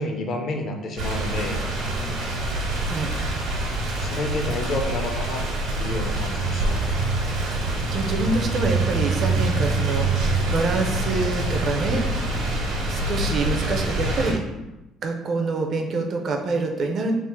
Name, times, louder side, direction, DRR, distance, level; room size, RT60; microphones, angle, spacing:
voice 1, 0.0-1.6 4.0-5.4 5.8-6.8, left 2 dB, 40° left, 3 dB, 0.5 m, -29 dB
sound 1, 1.0-14.3, right 2 dB, 80° right, 1.2 m, -25 dB
voice 2, 7.9-12.0 12.9-14.4 15.0-17.1, right 3 dB, 35° right, 3 dB, 0.4 m, -26 dB
3.6 x 2.4 x 4.5 m, 1.0 s
cardioid pair, 180°, 0 cm